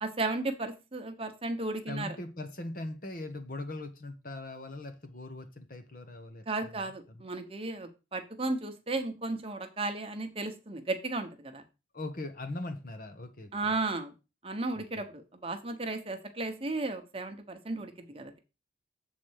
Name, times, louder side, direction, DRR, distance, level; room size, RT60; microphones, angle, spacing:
voice 1, 0.0-2.1 6.5-11.6 13.5-14.1 14.4-18.4, right 2 dB, 30° right, 1.0 m, -34 dB
voice 2, 1.9-7.2 11.9-13.7 14.7-14.8, left 2 dB, 45° left, 1.1 m, -40 dB
7.5 x 4.2 x 6.4 m
head